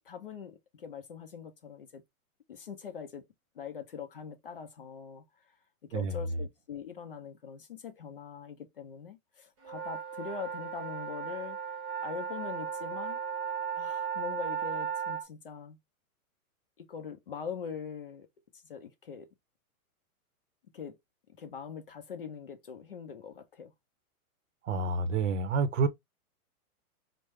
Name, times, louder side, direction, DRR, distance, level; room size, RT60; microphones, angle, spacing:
voice 1, 0.0-2.0 2.5-3.3 3.6-5.3 5.9-11.6 12.0-13.2 13.8-15.8 16.8-18.3 18.6-19.3 20.7-21.0 21.4-23.7, left 6 dB, 40° left, 0.5 m, -42 dB
sound 1, 9.6-15.2, right 7 dB, 20° right, 0.9 m, -36 dB
voice 2, 24.6-25.9, right 4 dB, 55° right, 0.7 m, -28 dB
5.0 x 2.1 x 3.0 m
hypercardioid pair, 180°, 44 cm